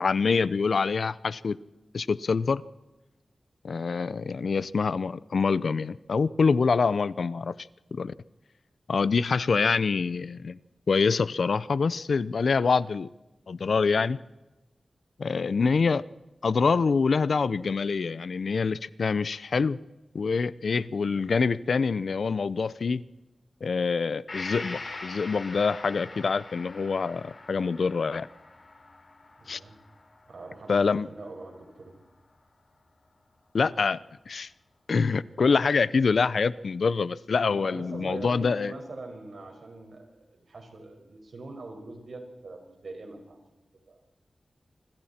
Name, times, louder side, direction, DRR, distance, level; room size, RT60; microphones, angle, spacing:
voice 1, 0.0-1.6 1.9-2.6 3.6-7.5 7.9-8.1 8.9-10.6 10.9-13.1 13.5-14.2 15.2-16.0 16.4-19.8 20.1-23.0 23.6-28.3 29.5-29.6 30.7-31.1 33.5-34.0 34.3-34.5 34.9-38.7, left 5 dB, 70° left, 18 dB, 0.6 m, -25 dB
Gong, 24.3-31.9 32.3-32.4, left 3 dB, 50° left, 3.9 m, -43 dB
voice 2, 29.4-29.8 30.3-32.0 37.4-44.0, right 2 dB, 70° right, 3 dB, 5.5 m, -43 dB
26.0 x 25.5 x 4.4 m, 1.1 s
wide cardioid pair, 95°, 0 cm